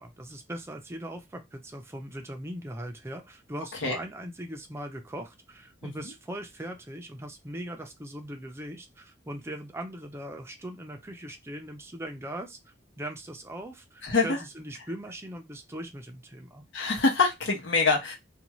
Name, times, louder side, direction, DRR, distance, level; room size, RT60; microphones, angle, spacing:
voice 1, 0.0-12.6 13.0-16.6, right 1 dB, 15° right, 0.5 m, -40 dB
voice 2, 14.0-14.4 16.7-18.1, left 3 dB, 70° left, 1.0 m, -24 dB
2.6 x 2.3 x 3.0 m
head